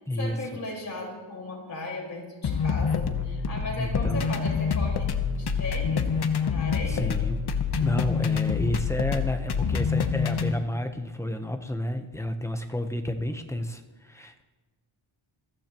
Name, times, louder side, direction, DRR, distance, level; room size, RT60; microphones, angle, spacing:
voice 1, 0.0-6.1 6.4-7.1, left 1 dB, 35° left, -3 dB, 4.8 m, -36 dB
sound 1, 2.4-10.5, left 6 dB, 55° left, 1.0 m, -26 dB
voice 2, 3.8-4.2 6.9-7.4 7.7-14.4, left 1 dB, 5° left, 6 dB, 0.9 m, -31 dB
21.5 x 15.0 x 3.0 m, 1.3 s
wide cardioid pair, 135°, 46 cm